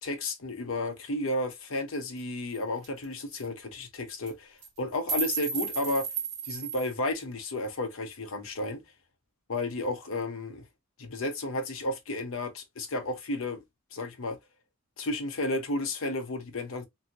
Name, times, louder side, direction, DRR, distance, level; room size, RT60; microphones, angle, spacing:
voice 1, 0.0-6.1 6.4-8.8 9.5-10.6 11.0-13.6 13.9-14.4 15.0-16.8, left 2 dB, 70° left, 0.7 m, -32 dB
sound 1, 2.2-2.3 2.5-2.6 2.8-3.0 3.3-3.4 4.1-4.3 4.6-6.9, right 5 dB, 35° right, 1.4 m, -34 dB
2.7 x 2.7 x 2.6 m
head